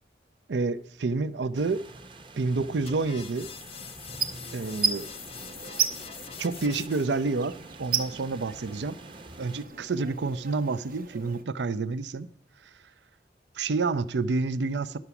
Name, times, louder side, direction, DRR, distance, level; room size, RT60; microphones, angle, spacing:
voice 1, 0.5-1.8 2.4-3.5 4.5-5.1 6.4-7.5 7.8-9.0 9.4-12.3 13.6-15.0, right 3 dB, 80° right, 15 dB, 0.5 m, -28 dB
sound 1, 1.5-9.6, right 2 dB, 30° right, 0.8 m, -47 dB
sound 2, 2.9-7.3, left 8 dB, 35° left, 0.5 m, -44 dB
sound 3, 4.1-11.4, right 6 dB, 55° right, 0.9 m, -34 dB
11.0 x 5.9 x 6.9 m, 0.62 s
head